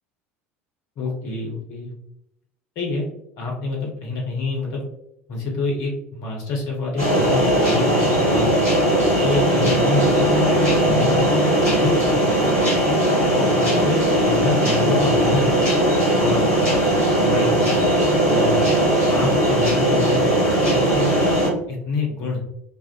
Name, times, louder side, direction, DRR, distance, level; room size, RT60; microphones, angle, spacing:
voice 1, 1.0-1.9 2.8-3.1 3.4-4.8 5.3-8.6 9.2-10.3 10.8-12.5 12.9-13.0 13.3-15.5 16.1-16.8 17.2-17.9 18.3-18.6 19.1-21.1 21.7-22.4, left 3 dB, 50° left, -1 dB, 0.9 m, -27 dB
sound 1, 7.0-21.5, right 1 dB, 85° right, 1.1 m, -18 dB
2.4 x 2.3 x 2.5 m, 0.78 s
figure-of-eight pair, 70°, 7 cm